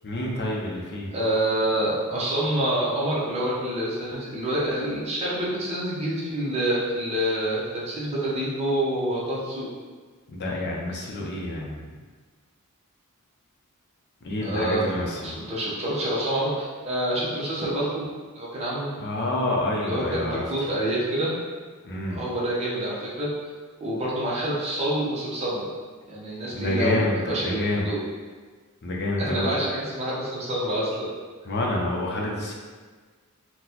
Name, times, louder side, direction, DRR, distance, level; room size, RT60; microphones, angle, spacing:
voice 1, 0.0-1.1 10.3-11.9 14.2-15.4 19.0-20.4 21.8-22.2 26.5-27.9 28.8-29.6 31.4-32.5, left 1 dB, 50° left, -2 dB, 0.6 m, -28 dB
voice 2, 1.1-9.7 14.4-14.9 15.2-18.1 18.3-18.9 19.8-21.3 22.1-23.3 23.8-25.7 26.1-28.0 29.2-31.1, right 1 dB, 30° right, -7 dB, 0.8 m, -27 dB
3.9 x 2.1 x 2.8 m, 1.5 s
head